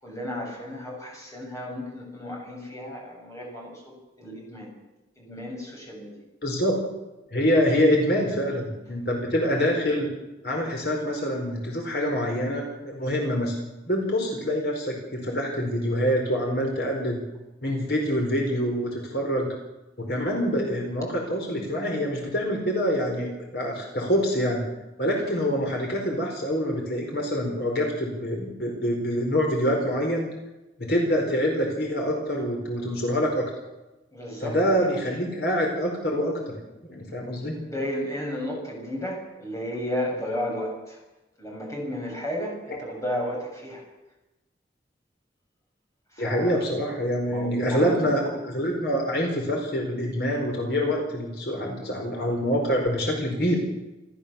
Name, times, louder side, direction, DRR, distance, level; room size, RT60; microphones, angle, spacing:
voice 1, 0.0-4.7 5.2-6.2 34.1-34.6 37.6-41.0 41.4-43.8 46.1-46.5 47.3-48.1, equal, 15° left, -1 dB, 7.1 m, -33 dB
voice 2, 6.4-6.8 7.3-10.1 10.4-13.6 13.9-17.2 17.6-19.5 20.0-24.7 25.0-30.3 30.8-33.5 34.4-36.6 36.9-37.6 46.2-53.6, equal, 60° left, 1 dB, 4.7 m, -25 dB
28.0 x 14.0 x 7.1 m, 1.0 s
head